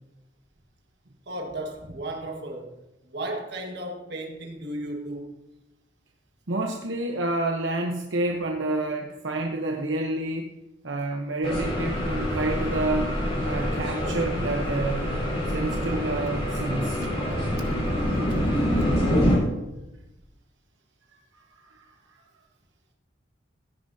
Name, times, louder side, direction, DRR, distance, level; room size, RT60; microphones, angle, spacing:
voice 1, 1.3-2.8 3.1-5.3 17.0-17.1 18.3-18.4, right 1 dB, 60° right, 1.7 m, -35 dB
voice 2, 6.5-10.5 10.8-13.1 13.4-15.1 15.5-17.0 17.8-17.9 21.8-21.9, right 2 dB, 80° right, 1.0 m, -29 dB
sound 1, 11.4-19.4, equal, 35° left, 3.9 m, -26 dB
16.0 x 9.9 x 2.8 m
head